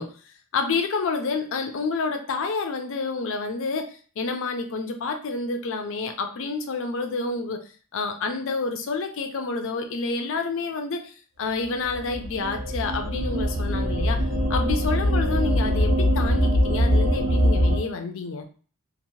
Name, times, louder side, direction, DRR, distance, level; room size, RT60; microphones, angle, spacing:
voice 1, 0.0-7.6 7.9-14.2 14.5-18.4, left 4 dB, 60° left, 6 dB, 0.4 m, -29 dB
sound 1, 11.9-17.8, equal, 45° right, 1.0 m, -22 dB
2.9 x 2.1 x 2.6 m, 0.40 s
head